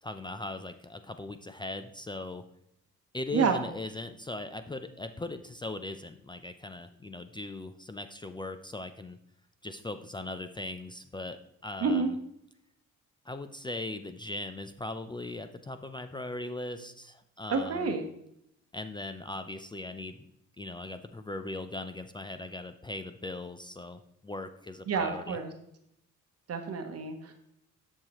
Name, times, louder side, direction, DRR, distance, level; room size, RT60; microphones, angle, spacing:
voice 1, 0.0-2.4 3.1-9.2 9.6-12.2 13.3-17.9 18.7-20.2 20.6-25.4, left 2 dB, 15° left, 9 dB, 0.5 m, -39 dB
voice 2, 3.3-3.6 11.8-12.1 17.5-18.0 24.9-25.5 26.5-27.3, right 5 dB, 55° right, 5 dB, 1.1 m, -29 dB
10.5 x 6.6 x 3.0 m, 0.75 s
cardioid pair, 90°, 30 cm